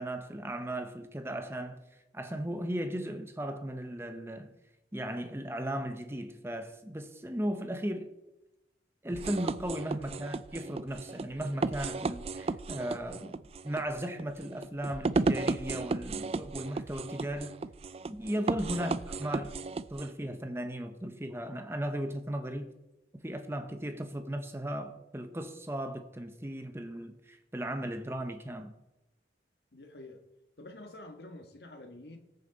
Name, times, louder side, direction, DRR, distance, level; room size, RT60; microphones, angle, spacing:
voice 1, 0.0-1.8 2.1-4.5 4.9-8.1 9.0-17.6 18.1-18.9 19.2-19.5 19.9-22.7 23.2-28.8, right 1 dB, 15° right, 0.9 m, -36 dB
sound 1, 9.1-20.1, right 3 dB, 35° right, 0.3 m, -34 dB
voice 2, 18.7-19.0 29.7-30.2 30.6-32.2, left 2 dB, 70° left, 1.5 m, -48 dB
20.0 x 6.6 x 4.0 m
head